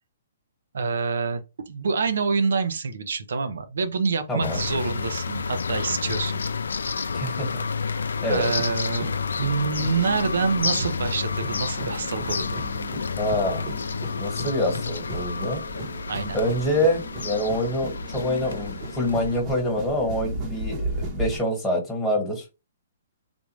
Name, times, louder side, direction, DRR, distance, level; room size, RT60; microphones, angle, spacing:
voice 1, 0.7-6.4 6.9-7.0 8.3-12.6 16.1-16.4, right 5 dB, 75° right, 0.7 m, -27 dB
sound 1, 4.4-19.4, left 5 dB, 85° left, 0.3 m, -30 dB
voice 2, 7.1-7.6 8.2-8.5 13.2-13.6 14.1-15.6 16.3-22.4, left 1 dB, 5° left, 1.5 m, -26 dB
sound 2, 8.2-21.4, right 1 dB, 30° right, 1.0 m, -36 dB
3.5 x 2.4 x 3.1 m
hypercardioid pair, 145°, 0 cm